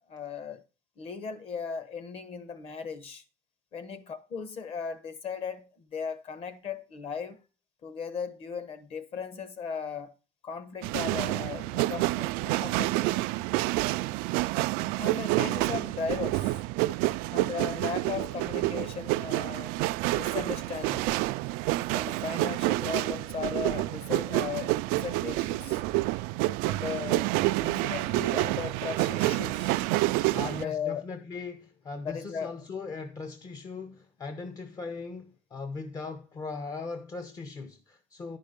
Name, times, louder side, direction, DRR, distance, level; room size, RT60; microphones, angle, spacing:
voice 1, 0.1-0.6 1.0-3.2 3.7-7.4 7.8-10.1 10.4-13.4 15.0-16.6 17.3-19.8 20.1-21.1 21.9-25.8 26.6-27.3 27.6-29.8 30.4-31.0 32.0-32.5, left 6 dB, 40° left, 1.1 m, -37 dB
sound 1, 10.8-30.6, right 19 dB, 75° right, 0.4 m, -28 dB
voice 2, 30.3-38.4, left 4 dB, 25° left, 0.7 m, -39 dB
10.5 x 5.4 x 5.1 m
cardioid pair, 150°, 15 cm